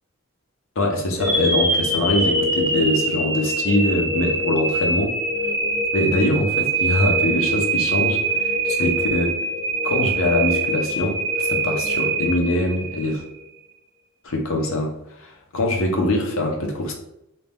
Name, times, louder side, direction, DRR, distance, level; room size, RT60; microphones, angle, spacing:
voice 1, 0.8-5.2 5.9-9.4 9.8-13.2 14.2-16.9, left 1 dB, 65° left, 2 dB, 0.7 m, -23 dB
sound 1, 1.2-13.3, right 2 dB, 20° right, 0.6 m, -23 dB
2.7 x 2.1 x 3.3 m, 0.82 s
head